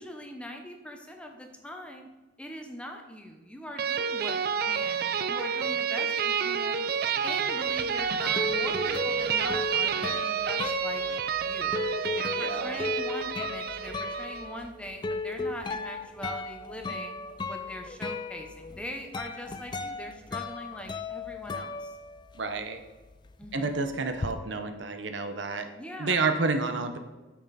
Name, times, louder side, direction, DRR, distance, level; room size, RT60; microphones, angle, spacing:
voice 1, 0.0-2.1 2.4-5.0 5.3-6.8 7.2-11.0 11.4-11.8 12.2-17.2 17.5-21.9 23.4-23.9 25.7-26.2, equal, 5° left, 3 dB, 0.8 m, -42 dB
sound 1, 3.8-14.5, right 7 dB, 50° right, 0.4 m, -29 dB
sound 2, 7.8-22.6 22.9-24.3, left 3 dB, 25° left, 0.4 m, -36 dB
voice 2, 12.4-12.8 22.3-22.8 23.5-25.7 26.0-27.0, right 3 dB, 70° right, 7 dB, 0.8 m, -29 dB
8.5 x 6.1 x 4.2 m, 1.2 s
head